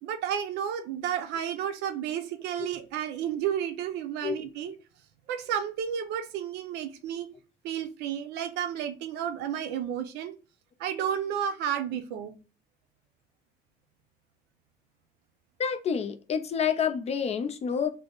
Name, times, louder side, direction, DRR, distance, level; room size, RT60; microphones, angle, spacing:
voice 1, 0.0-4.7 5.3-7.3 7.6-10.3 10.8-12.3, right 9 dB, 85° right, 0.6 m, -32 dB
voice 2, 15.6-17.9, left 7 dB, 40° left, 0.4 m, -28 dB
3.3 x 2.0 x 3.8 m
cardioid pair, 110°, 17 cm